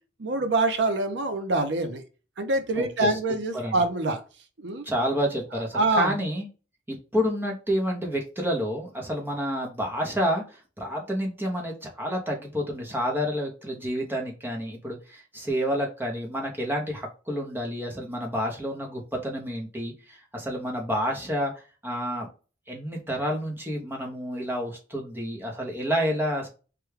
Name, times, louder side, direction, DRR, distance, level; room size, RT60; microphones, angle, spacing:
voice 1, 0.2-2.0 2.4-4.2 4.6-4.9 5.7-6.1, right 2 dB, 70° right, 7 dB, 0.6 m, -25 dB
voice 2, 2.8-3.2 3.5-3.8 4.8-6.5 6.9-22.3 22.7-26.5, equal, 10° right, 0 dB, 0.7 m, -29 dB
3.3 x 2.2 x 3.2 m, 0.35 s
head